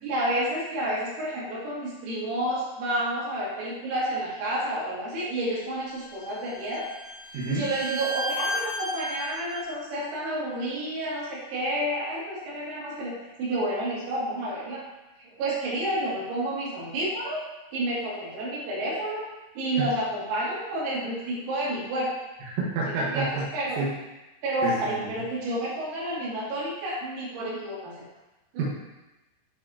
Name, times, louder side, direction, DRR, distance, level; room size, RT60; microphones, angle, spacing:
voice 1, 0.0-6.9 7.5-13.1 13.4-14.8 15.2-17.4 17.7-19.3 19.6-22.1 22.9-23.8 24.4-28.0 28.5-28.6, right 1 dB, 85° right, -8 dB, 5.1 m, -30 dB
Bowed string instrument, 5.9-9.7, left 1 dB, 85° left, 2.2 m, -34 dB
voice 2, 7.3-7.7 19.8-19.9 22.5-23.5 23.8-23.9 24.6-25.1 28.6-28.7, right 3 dB, 70° right, -5 dB, 3.5 m, -28 dB
10.0 x 5.5 x 2.9 m, 1.0 s
omnidirectional pair, 6.0 m